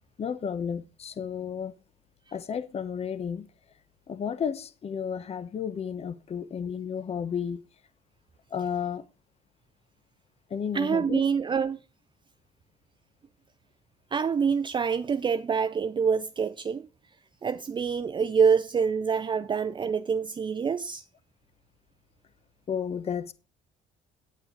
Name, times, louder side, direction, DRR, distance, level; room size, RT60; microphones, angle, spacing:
voice 1, 0.2-1.8 2.3-3.5 4.1-7.7 8.5-9.1 10.5-11.2 22.7-23.3, left 7 dB, 35° left, 1.0 m, -32 dB
voice 2, 10.7-11.8 14.1-16.9 17.4-21.0, right 6 dB, 30° right, 0.5 m, -26 dB
9.5 x 8.9 x 5.2 m
cardioid pair, 110°, 17 cm